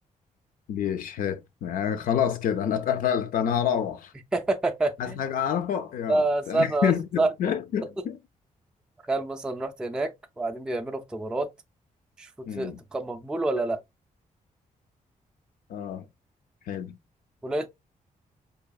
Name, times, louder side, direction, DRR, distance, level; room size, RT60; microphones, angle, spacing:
voice 1, 0.7-4.1 5.0-8.2 12.5-12.8 15.7-16.1 16.7-17.0, left 8 dB, 80° left, 0.4 m, -28 dB
voice 2, 4.3-5.2 6.1-6.9 7.2-7.3 9.0-11.5 12.2-13.8 17.4-17.7, right 2 dB, 5° right, 0.3 m, -27 dB
4.7 x 2.7 x 2.3 m
wide cardioid pair, 125°, 14 cm